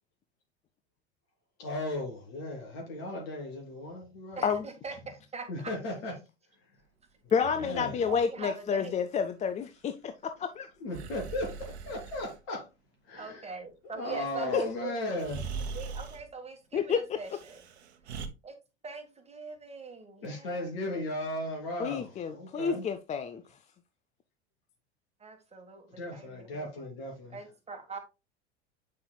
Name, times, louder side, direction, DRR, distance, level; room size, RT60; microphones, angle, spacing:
voice 1, 1.6-4.4 5.5-6.1 7.6-8.1 10.8-12.7 13.1-13.4 13.8-15.4 20.2-22.9 25.9-27.4, left 1 dB, 60° left, 3.4 m, -36 dB
voice 2, 4.4-5.7 8.1-9.0 13.1-15.2 15.7-17.6 18.1-18.2 18.4-18.6 18.8-20.7 25.2-26.7 27.3-28.0, right 4 dB, 20° right, 1.6 m, -42 dB
voice 3, 7.3-10.7 14.5-14.6 16.7-17.0 21.8-23.4, left 6 dB, 20° left, 0.5 m, -29 dB
Breathing, 7.3-8.2 10.9-12.4 14.5-14.6 15.2-16.3 17.2-18.3, right 5 dB, 70° right, 1.0 m, -41 dB
8.4 x 5.6 x 2.3 m
figure-of-eight pair, 80°, 34 cm